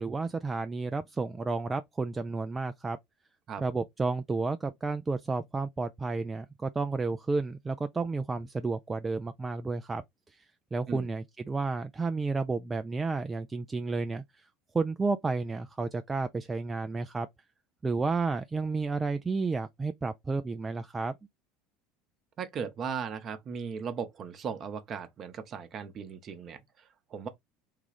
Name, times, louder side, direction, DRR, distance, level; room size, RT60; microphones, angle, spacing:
voice 1, 0.0-3.0 3.6-10.0 10.3-14.5 14.7-17.3 17.8-21.1, right 3 dB, 20° right, 0.3 m, -31 dB
voice 2, 22.4-27.3, right 6 dB, 40° right, 0.8 m, -37 dB
3.7 x 2.4 x 3.3 m
figure-of-eight pair, 70°, 0 cm